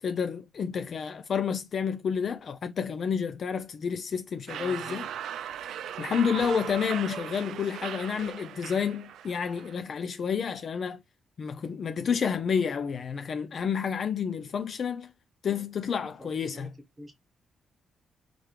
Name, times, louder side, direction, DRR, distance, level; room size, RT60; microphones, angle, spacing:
voice 1, 0.0-5.1 6.0-11.0 11.4-15.1 15.4-16.7, left 6 dB, 40° left, 0.4 m, -30 dB
voice 2, 4.5-5.0 6.0-6.5 16.0-16.7 17.0-17.1, right 1 dB, 10° right, 1.4 m, -48 dB
sound 1, 4.5-9.8, right 9 dB, 75° right, 0.4 m, -38 dB
5.1 x 3.3 x 3.1 m
cardioid pair, 175°, 0 cm